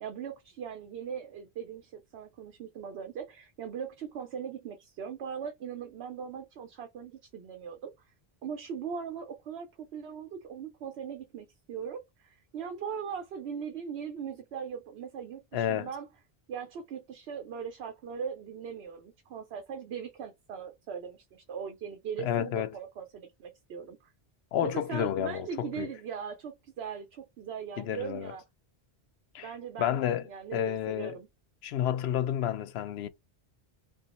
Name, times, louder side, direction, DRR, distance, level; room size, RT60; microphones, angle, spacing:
voice 1, 0.0-7.9 8.4-16.1 16.5-24.0 24.6-28.4 29.4-29.9 30.3-31.3, right 7 dB, 85° right, 0.9 m, -40 dB
voice 2, 15.5-15.9 22.2-22.7 24.5-25.9 27.8-28.3 29.3-29.5 29.8-31.2 31.6-33.1, left 10 dB, 80° left, 0.8 m, -30 dB
2.9 x 2.4 x 4.0 m
omnidirectional pair, 1.1 m